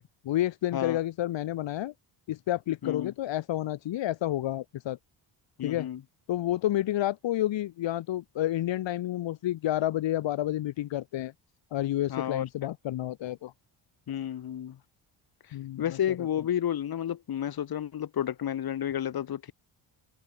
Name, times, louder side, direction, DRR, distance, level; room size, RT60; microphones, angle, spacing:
voice 1, 0.2-1.9 2.3-5.0 5.6-5.9 6.3-11.3 11.7-13.5 15.5-16.2, left 13 dB, 70° left, 2.9 m, -30 dB
voice 2, 2.8-3.1 5.6-6.0 12.1-12.4 14.1-14.8 15.8-19.5, left 10 dB, 50° left, 6.5 m, -31 dB
cardioid pair, 175°, 45 cm